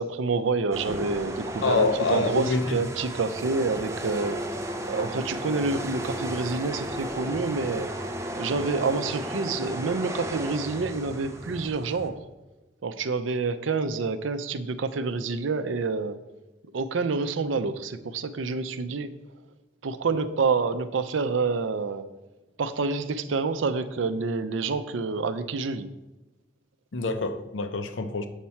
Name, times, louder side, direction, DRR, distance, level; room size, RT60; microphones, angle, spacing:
voice 1, 0.0-4.6 4.8-7.9 8.3-12.2 12.8-16.2 16.7-19.1 19.8-22.2 22.6-25.9, right 4 dB, 80° right, 0.5 m, -28 dB
sound 1, 0.7-12.1, right 1 dB, 15° right, 0.5 m, -34 dB
voice 2, 1.6-2.8 26.9-28.3, left 3 dB, 75° left, 0.6 m, -26 dB
7.3 x 4.3 x 5.7 m
head